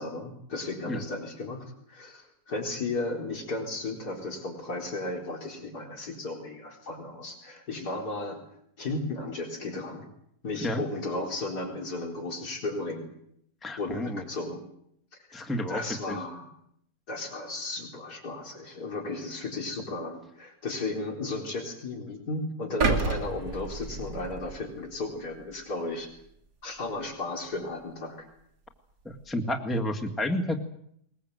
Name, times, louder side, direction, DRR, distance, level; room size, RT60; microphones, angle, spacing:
voice 1, 0.0-8.4 8.8-10.1 10.4-13.1 13.8-14.6 15.3-16.5 17.1-26.1 26.6-28.3, left 2 dB, 70° left, 1 dB, 4.5 m, -34 dB
voice 2, 13.6-14.2 15.3-16.2 29.0-30.6, left 1 dB, ahead, 4 dB, 1.7 m, -30 dB
sound 1, 22.8-25.0 25.4-25.6, right 3 dB, 75° right, 2.6 m, -30 dB
21.5 x 21.0 x 8.0 m, 0.72 s
omnidirectional pair, 1.7 m